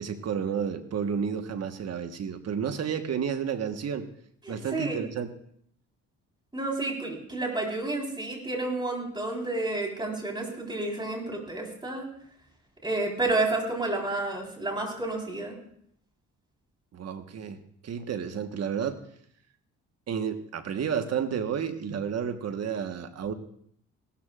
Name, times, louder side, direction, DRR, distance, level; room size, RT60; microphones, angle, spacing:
voice 1, 0.0-4.1 4.5-5.3 16.9-19.0 20.1-23.3, right 7 dB, 55° right, 8 dB, 1.3 m, -31 dB
voice 2, 4.4-5.0 6.5-12.1 12.8-15.6, right 2 dB, 15° right, -1 dB, 4.0 m, -30 dB
17.5 x 13.0 x 2.5 m, 0.65 s
cardioid pair, 90°, 30 cm